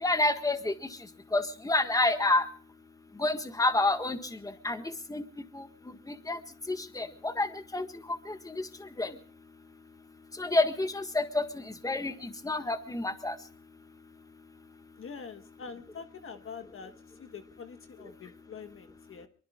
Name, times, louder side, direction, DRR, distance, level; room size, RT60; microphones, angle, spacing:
voice 1, 0.0-0.7 1.3-2.4 3.2-4.2 4.4-5.2 5.5-5.6 6.3-6.4 6.7-8.5 9.0-9.1 10.4-11.4 11.8-13.4, left 2 dB, 10° left, 8 dB, 1.6 m, -28 dB
voice 2, 15.0-16.9 17.2-19.3, left 5 dB, 45° left, 8 dB, 1.3 m, -45 dB
23.5 x 23.5 x 2.4 m, 0.43 s
cardioid pair, 90°, 30 cm